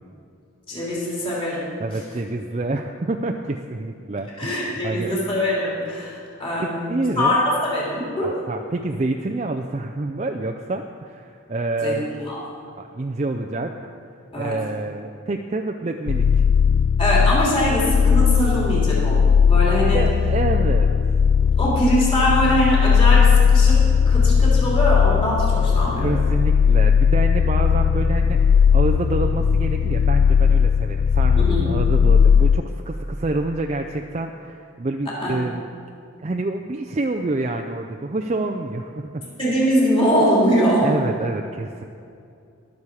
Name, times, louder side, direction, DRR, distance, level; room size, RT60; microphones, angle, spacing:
voice 1, 0.7-1.7 4.4-8.3 11.8-12.4 14.3-14.6 17.0-20.0 21.6-26.2 31.4-31.7 35.0-35.3 39.4-40.9, equal, 25° left, -6 dB, 3.3 m, -22 dB
voice 2, 1.8-4.6 4.8-5.2 6.6-7.4 8.2-12.1 12.7-13.7 14.4-16.5 19.9-20.9 26.0-35.6 36.2-39.3 40.8-41.8, right 2 dB, 35° right, 4 dB, 0.4 m, -27 dB
sound 1, 16.1-32.6, left 6 dB, 80° left, 0.4 m, -17 dB
22.0 x 7.3 x 4.8 m, 2.4 s
head